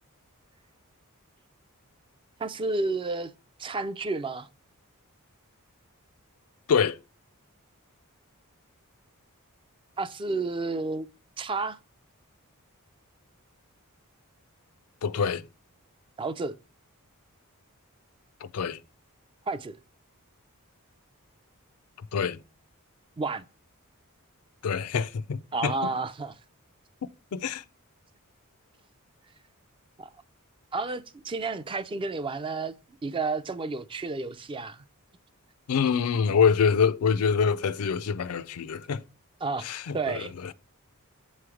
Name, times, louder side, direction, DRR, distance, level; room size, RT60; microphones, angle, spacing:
voice 1, 2.4-3.3 3.6-4.5 10.0-11.1 11.4-11.8 16.2-16.5 19.5-19.8 23.2-23.4 25.5-26.3 30.0-30.1 30.7-32.7 33.0-34.9 39.4-39.7 39.9-40.3, right 3 dB, 20° right, 0.3 m, -31 dB
voice 2, 6.7-7.0 15.0-15.5 18.4-18.8 22.1-22.4 24.6-25.9 27.3-27.6 35.7-39.0 39.6-40.5, left 6 dB, 70° left, 0.4 m, -25 dB
7.6 x 3.2 x 4.8 m
head